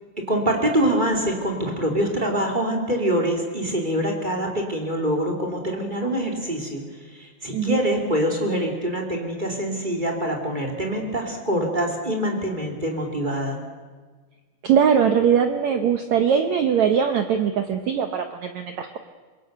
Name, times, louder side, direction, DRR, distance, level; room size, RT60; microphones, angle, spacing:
voice 1, 0.3-6.8 7.1-13.6, equal, 15° right, 1 dB, 2.4 m, -25 dB
voice 2, 7.5-7.8 14.6-19.0, right 7 dB, 85° right, 7 dB, 1.6 m, -21 dB
25.5 x 21.5 x 6.6 m, 1.4 s
omnidirectional pair, 4.7 m